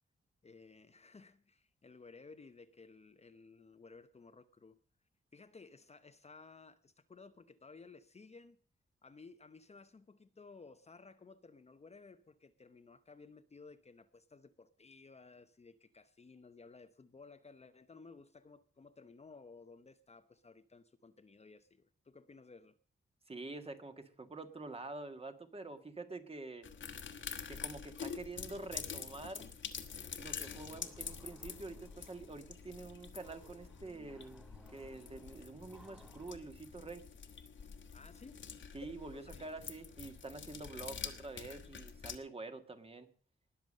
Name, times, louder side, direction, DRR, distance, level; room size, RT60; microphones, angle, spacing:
voice 1, 0.4-4.8 5.3-8.6 9.0-22.8 37.9-38.4 39.3-39.6, left 4 dB, 30° left, 0.8 m, -57 dB
voice 2, 23.3-26.7 27.5-29.5 30.2-34.4 34.7-37.0 38.7-43.1, right 3 dB, 30° right, 1.7 m, -47 dB
sound 1, 26.6-42.2, left 6 dB, 65° left, 1.5 m, -47 dB
sound 2, 30.4-36.4, right 1 dB, 5° right, 0.8 m, -62 dB
20.0 x 7.1 x 6.4 m
wide cardioid pair, 135°, 21 cm